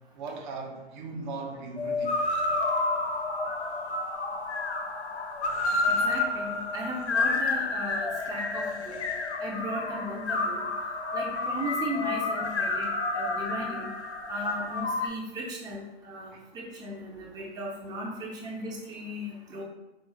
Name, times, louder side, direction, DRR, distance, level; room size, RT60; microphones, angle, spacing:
voice 1, 0.2-2.2 16.3-16.4, right 3 dB, 45° right, 0.7 m, -38 dB
sound 1, 1.8-15.1, left 3 dB, 80° left, 0.7 m, -30 dB
voice 2, 5.9-9.0 9.4-10.6 11.1-12.9 13.1-13.9 14.3-19.6, equal, 10° right, 0.7 m, -36 dB
5.0 x 2.0 x 4.0 m
figure-of-eight pair, 110°, 33 cm